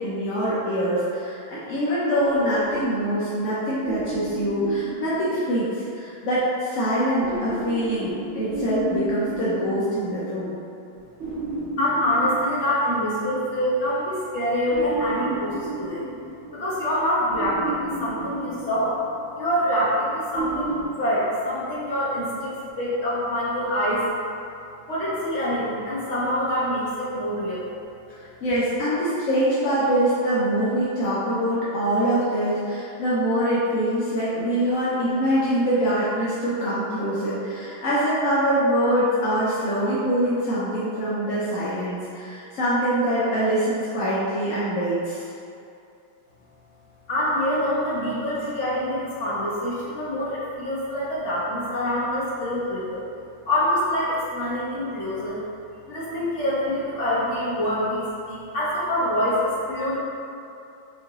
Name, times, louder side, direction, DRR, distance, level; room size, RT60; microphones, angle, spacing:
voice 1, 0.0-10.6 28.1-45.3, right 1 dB, 65° left, -10 dB, 0.8 m, -24 dB
sound 1, 2.2-5.9 7.2-10.5 11.2-13.3 14.7-16.8 17.3-19.3 20.3-20.8, right 1 dB, 45° right, 1.2 m, -33 dB
voice 2, 11.8-16.1 16.5-19.0 19.4-24.1 24.9-27.7 47.1-53.0 53.4-55.4 55.9-60.0, equal, 40° left, -9 dB, 1.2 m, -25 dB
4.8 x 2.7 x 3.6 m, 2.6 s
omnidirectional pair, 2.2 m